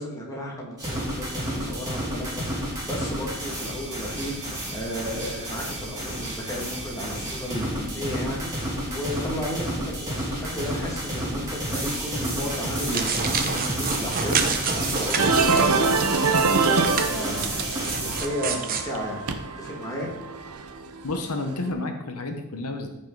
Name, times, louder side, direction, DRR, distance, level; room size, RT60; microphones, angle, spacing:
voice 1, 0.0-4.4 4.7-19.3 19.6-20.1, left 1 dB, 15° left, -2 dB, 2.1 m, -34 dB
sound 1, 0.8-18.2, right 1 dB, 15° right, 2.7 m, -30 dB
sound 2, 12.9-16.4 16.8-18.9, right 5 dB, 40° right, 0.9 m, -29 dB
sound 3, 15.2-21.5, right 4 dB, 80° right, 0.9 m, -25 dB
voice 2, 21.0-22.9, left 2 dB, 85° left, 6 dB, 1.0 m, -30 dB
14.0 x 5.5 x 4.0 m, 1.0 s
head